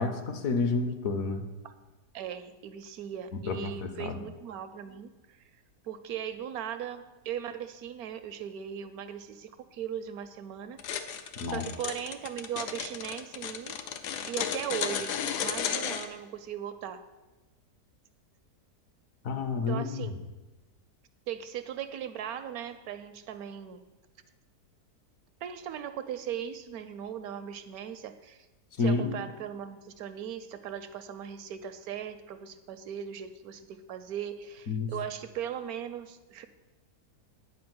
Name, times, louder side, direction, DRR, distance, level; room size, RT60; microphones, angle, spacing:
voice 1, 0.0-1.4 3.5-4.2 11.4-11.7 19.2-20.1 28.8-29.2 34.7-34.9, left 3 dB, 60° left, 7 dB, 1.1 m, -29 dB
voice 2, 2.1-10.8 11.5-13.8 14.3-17.0 19.7-20.2 21.3-23.8 25.4-28.5 28.8-36.5, right 9 dB, 70° right, 10 dB, 1.0 m, -38 dB
sound 1, 10.8-16.1, left 8 dB, 80° left, 1.3 m, -33 dB
9.4 x 4.9 x 7.7 m, 1.1 s
omnidirectional pair, 1.7 m